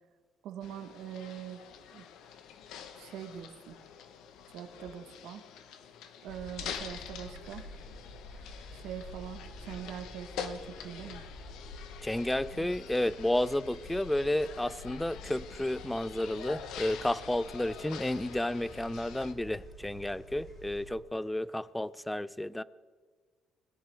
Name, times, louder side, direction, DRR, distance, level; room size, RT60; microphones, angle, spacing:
voice 1, 0.4-1.6 1.9-2.1 2.9-3.8 4.5-5.4 6.2-7.7 8.7-11.2 12.6-12.7, right 9 dB, 80° right, 7 dB, 1.0 m, -43 dB
sound 1, 0.6-19.3, left 8 dB, 80° left, 0.9 m, -46 dB
sound 2, 6.3-20.9, left 1 dB, 45° left, 4.0 m, -49 dB
voice 2, 12.0-22.6, left 1 dB, 5° left, 19 dB, 0.3 m, -31 dB
19.0 x 10.5 x 3.3 m, 1.5 s
cardioid pair, 150°, 0 cm